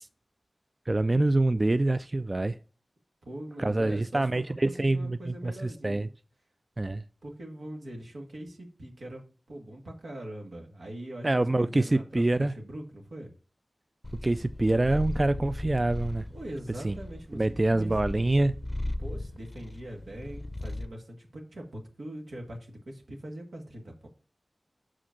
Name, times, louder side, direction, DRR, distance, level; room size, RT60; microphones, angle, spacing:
voice 1, 0.9-2.6 3.6-6.1 6.8-7.0 11.2-12.5 14.2-16.2 16.8-17.0 17.3-18.5, right 2 dB, 35° right, 0.3 m, -26 dB
voice 2, 3.2-6.1 7.2-13.3 16.3-17.4 17.7-18.0 19.0-24.1, right 1 dB, 90° right, 1.7 m, -42 dB
Purr, 14.0-21.0, left 1 dB, 35° left, 0.5 m, -37 dB
6.0 x 5.0 x 5.7 m
wide cardioid pair, 50°, 0 cm